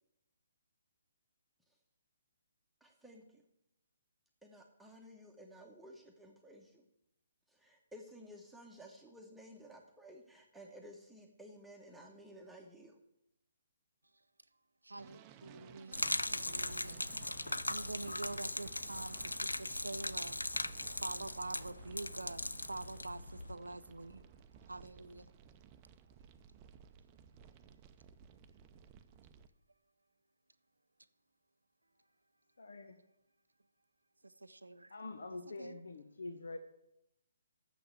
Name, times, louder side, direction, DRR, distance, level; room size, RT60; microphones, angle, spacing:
voice 1, 2.8-3.2 4.4-6.8 7.5-13.0, equal, 5° right, 1.1 m, -55 dB
voice 2, 14.8-20.4 21.0-24.3 24.7-25.3 34.2-34.9 35.6-35.8, right 2 dB, 80° right, 0.5 m, -46 dB
sound 1, 15.0-29.5, right 7 dB, 25° right, 0.6 m, -58 dB
Gurgling / Liquid, 15.9-23.6, left 2 dB, 85° left, 0.4 m, -39 dB
voice 3, 32.6-33.0 34.9-36.6, left 2 dB, 65° left, 0.9 m, -45 dB
7.2 x 6.9 x 7.7 m
figure-of-eight pair, 135°, 0 cm